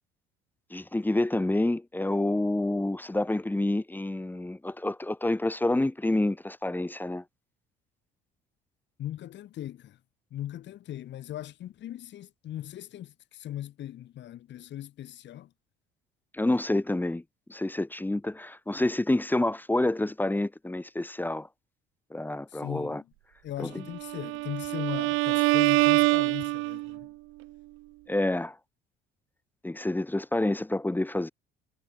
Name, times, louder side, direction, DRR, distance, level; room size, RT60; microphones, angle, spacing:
voice 1, 0.7-7.2 16.3-17.2 17.5-21.5 22.1-23.0 23.6-23.7 28.1-28.6 29.6-31.3, left 1 dB, 10° left, 2.0 m, -28 dB
voice 2, 9.0-10.0 10.3-15.5 22.5-23.1 23.4-27.1, left 12 dB, 60° left, 5.1 m, -39 dB
Bowed string instrument, 23.9-27.1, right 22 dB, 75° right, 1.4 m, -25 dB
supercardioid pair, 95°, 21 cm